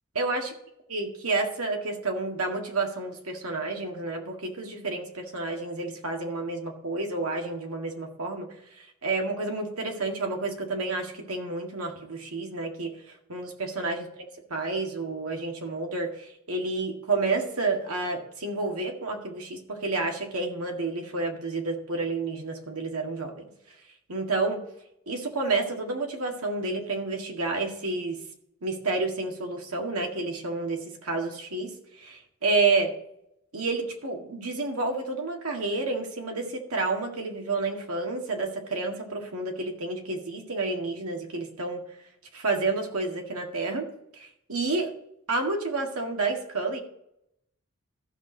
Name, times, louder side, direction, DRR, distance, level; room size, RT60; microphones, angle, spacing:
voice 1, 0.2-0.5 0.9-8.5 8.8-13.0 13.3-14.1 14.5-23.5 24.1-24.6 25.1-28.2 28.6-31.7 32.0-32.9 33.5-41.8 42.3-43.9 44.2-44.9 45.3-46.8, right 3 dB, 85° right, 2 dB, 2.0 m, -30 dB
14.5 x 6.3 x 3.9 m, 0.78 s
head